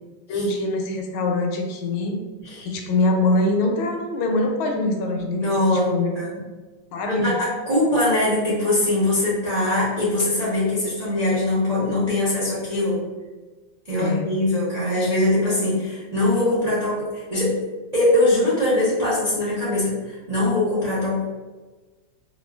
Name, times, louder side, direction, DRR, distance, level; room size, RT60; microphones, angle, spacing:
voice 1, 0.3-2.2 2.6-6.1 6.9-7.4 14.0-14.3, left 2 dB, 80° left, 3 dB, 1.4 m, -23 dB
voice 2, 2.4-2.7 5.3-5.9 6.1-6.3 7.0-13.0 13.9-17.5 17.9-21.3, left 1 dB, 75° right, -10 dB, 0.3 m, -22 dB
4.2 x 2.3 x 2.3 m, 1.3 s
omnidirectional pair, 2.2 m